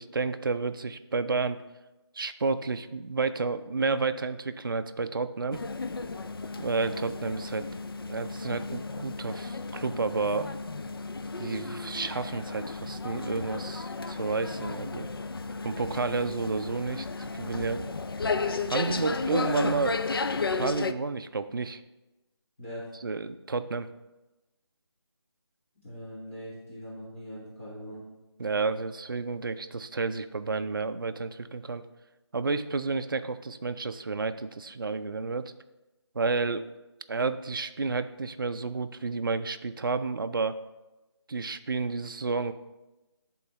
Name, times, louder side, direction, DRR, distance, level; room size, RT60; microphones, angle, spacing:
voice 1, 0.0-1.6 2.1-5.6 6.6-7.7 8.1-10.5 11.4-15.1 15.6-17.9 18.7-20.0 20.5-21.8 23.0-23.9 28.4-31.8 32.3-35.5 36.1-36.6 37.1-40.6 41.3-42.5, right 4 dB, 50° right, 10 dB, 0.4 m, -31 dB
sound 1, 5.5-20.9, left 4 dB, 55° left, 0.4 m, -34 dB
voice 2, 25.7-28.0, equal, 30° left, -10 dB, 1.6 m, -41 dB
8.9 x 3.8 x 4.2 m, 1.0 s
figure-of-eight pair, 175°, 14 cm